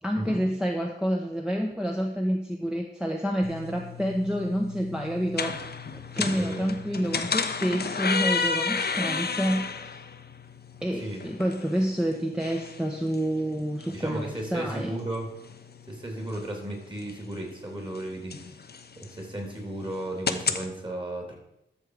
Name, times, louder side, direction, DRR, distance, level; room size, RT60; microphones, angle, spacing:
voice 1, 0.0-5.6 6.1-10.0 10.8-14.9, equal, 5° right, 0 dB, 1.0 m, -28 dB
sound 1, 3.4-20.7, left 5 dB, 55° left, 0.8 m, -34 dB
voice 2, 13.9-15.3 15.9-18.5 19.0-21.4, right 1 dB, 25° right, 1 dB, 3.2 m, -34 dB
13.0 x 6.5 x 4.8 m, 0.84 s
wide cardioid pair, 85°, 19 cm